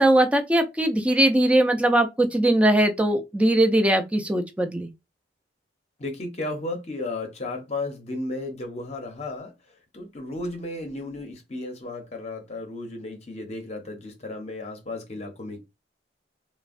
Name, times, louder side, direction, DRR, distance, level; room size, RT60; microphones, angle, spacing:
voice 1, 0.0-4.9, right 1 dB, 5° right, 0.3 m, -20 dB
voice 2, 6.0-15.6, left 2 dB, 40° left, 0.6 m, -34 dB
3.3 x 2.0 x 2.4 m
head